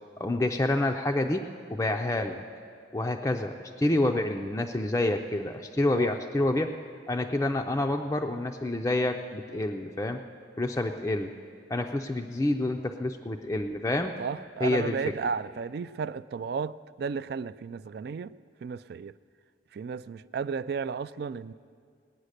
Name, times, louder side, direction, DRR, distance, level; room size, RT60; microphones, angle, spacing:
voice 1, 0.2-1.4 1.7-2.4 2.9-6.7 7.1-10.2 10.6-11.3 11.7-14.1 14.6-15.0, left 1 dB, 15° left, 0.4 m, -28 dB
voice 2, 14.2-18.3 18.6-19.1 19.7-21.5, right 5 dB, 55° right, 0.3 m, -33 dB
19.5 x 9.0 x 6.5 m
head